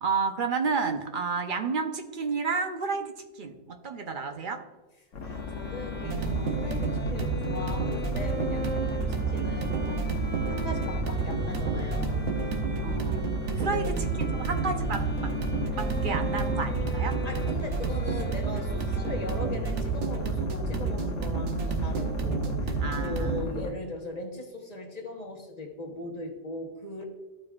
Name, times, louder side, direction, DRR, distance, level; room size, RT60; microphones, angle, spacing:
voice 1, 0.0-4.6 12.8-13.9 14.3-15.3 15.8-17.2 22.8-23.8, right 5 dB, 50° right, 5 dB, 0.8 m, -31 dB
sound 1, 5.1-23.7, left 5 dB, 85° left, 1.3 m, -36 dB
voice 2, 5.2-12.3 13.6-14.0 17.2-27.0, left 1 dB, 35° left, 0 dB, 1.1 m, -39 dB
Bowed string instrument, 5.2-19.9, left 1 dB, 10° left, 0.6 m, -41 dB
sound 2, 6.0-23.4, right 5 dB, 70° right, 1.1 m, -30 dB
14.0 x 4.7 x 2.4 m, 1.2 s
omnidirectional pair, 1.3 m